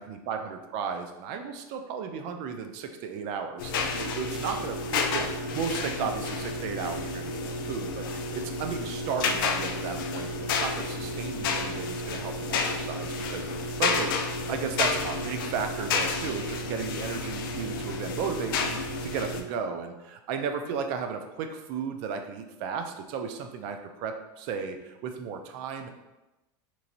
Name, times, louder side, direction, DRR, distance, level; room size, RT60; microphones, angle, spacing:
voice 1, 0.0-14.1 14.5-25.9, right 6 dB, 50° right, 6 dB, 0.4 m, -34 dB
sound 1, 3.6-19.4, left 3 dB, 85° left, 0.4 m, -31 dB
3.0 x 2.5 x 2.6 m, 1.0 s
supercardioid pair, 155°, 11 cm